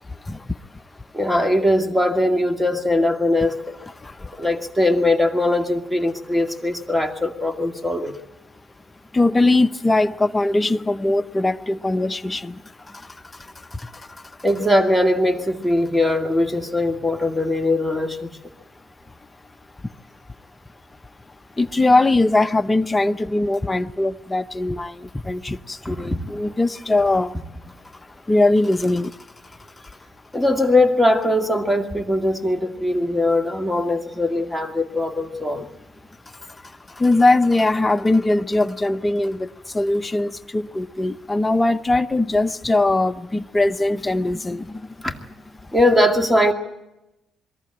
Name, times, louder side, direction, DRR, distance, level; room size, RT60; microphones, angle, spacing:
voice 1, 0.1-0.8 4.0-4.5 9.1-14.3 21.6-27.4 28.3-29.3 36.4-45.0, left 2 dB, 15° left, 0.8 m, -21 dB
voice 2, 1.1-3.8 4.4-8.1 14.4-18.3 25.9-26.2 30.3-35.7 45.0-45.1 45.7-46.5, left 1 dB, 5° right, 2.1 m, -20 dB
22.5 x 14.0 x 8.9 m
cardioid pair, 90°, 0 cm